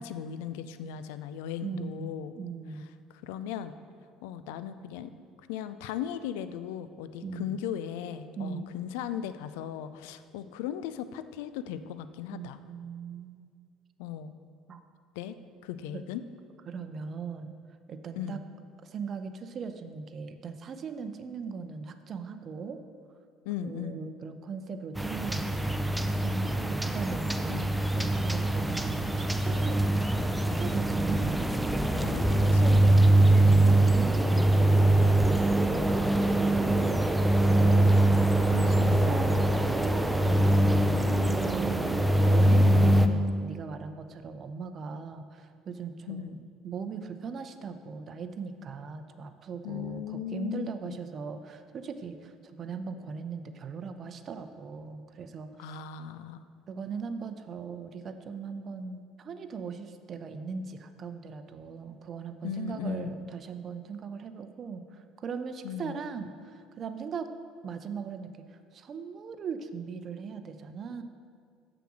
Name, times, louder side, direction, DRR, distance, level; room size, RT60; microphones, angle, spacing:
voice 1, 0.0-2.3 3.1-3.8 4.2-5.1 5.5-12.6 14.0-14.3 15.2-15.4 15.6-16.2 18.2-18.4 23.5-24.0 27.5-27.7 32.0-32.2 32.5-32.9 38.5-39.1 46.1-46.4 49.6-51.0 55.6-56.4 62.4-63.2 65.6-66.0, left 9 dB, 75° left, 12 dB, 0.3 m, -37 dB
voice 2, 1.6-2.9 7.2-7.6 8.4-8.7 12.3-13.5 14.7-14.8 15.9-16.0 16.7-17.5 17.9-18.4 18.8-22.8 23.6-25.7 26.0-27.5 28.0-29.8 30.2-31.6 32.3-35.3 35.6-40.9 41.2-55.8 56.7-67.3 67.6-68.3 68.7-71.0, right 5 dB, 45° right, 9 dB, 0.6 m, -39 dB
sound 1, 25.0-43.1, right 1 dB, 5° right, 0.6 m, -23 dB
6.9 x 6.0 x 6.1 m, 2.2 s
hypercardioid pair, 60°, 0 cm